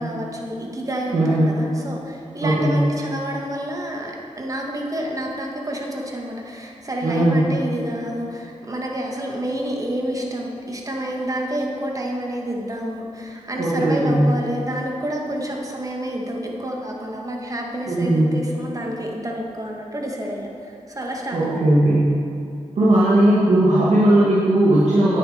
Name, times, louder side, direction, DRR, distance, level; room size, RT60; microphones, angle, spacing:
voice 1, 0.0-21.7, right 1 dB, 30° right, -1 dB, 1.8 m, -29 dB
voice 2, 1.1-1.6 2.4-2.8 7.0-7.4 13.6-14.3 17.9-18.4 21.3-22.1 22.8-25.2, right 1 dB, 75° right, -9 dB, 1.9 m, -17 dB
9.3 x 7.5 x 5.1 m, 2.6 s
cardioid pair, 60°, 12 cm